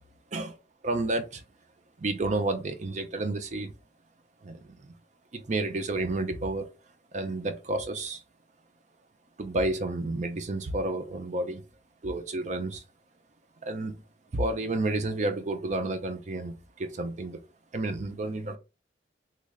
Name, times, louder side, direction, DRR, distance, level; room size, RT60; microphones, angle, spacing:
voice 1, 0.8-1.4 2.0-3.7 4.4-4.7 5.3-6.7 7.1-8.2 9.4-11.6 12.0-12.8 13.6-14.0 14.3-17.4 17.7-18.6, right 2 dB, 40° right, 0.5 m, -30 dB
3.1 x 2.4 x 3.5 m
head